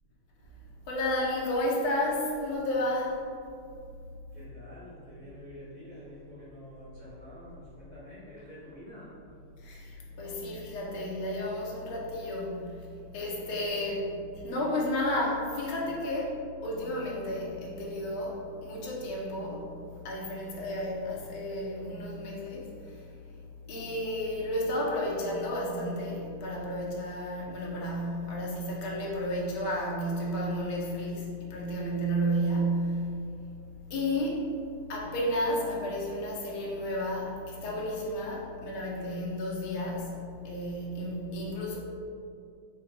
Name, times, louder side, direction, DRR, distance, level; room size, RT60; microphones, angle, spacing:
voice 1, 0.9-3.2 9.6-12.9 13.1-16.4 16.6-19.7 20.0-23.4 23.7-33.1 33.9-34.4 34.9-40.1 40.4-41.8, equal, 90° left, -4 dB, 1.7 m, -32 dB
voice 2, 4.3-9.4 10.1-10.2, left 1 dB, 35° left, -9 dB, 0.6 m, -48 dB
4.8 x 2.4 x 4.6 m, 2.4 s
omnidirectional pair, 2.2 m